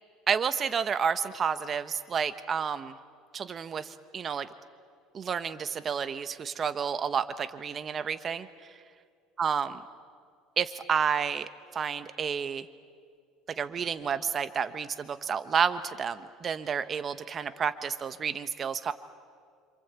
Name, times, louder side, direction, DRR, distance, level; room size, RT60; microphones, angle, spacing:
voice 1, 0.3-3.0 3.3-4.5 5.1-8.8 9.4-9.8 10.6-12.7 13.5-18.9, right 7 dB, 30° right, 12 dB, 1.0 m, -30 dB
27.0 x 27.0 x 8.2 m, 2.2 s
cardioid pair, 145°, 0 cm